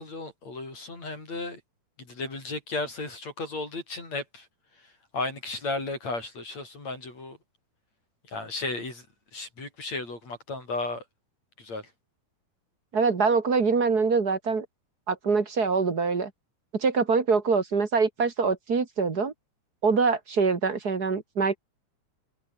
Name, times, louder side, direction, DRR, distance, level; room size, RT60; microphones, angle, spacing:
voice 1, 0.0-1.6 2.0-4.5 4.8-7.4 8.3-9.1 9.3-11.0 11.6-11.9, left 3 dB, 55° left, 9.0 m, -34 dB
voice 2, 12.9-14.7 15.1-16.3 16.7-19.3 19.8-21.6, right 4 dB, 35° right, 2.2 m, -24 dB
omnidirectional pair, 3.6 m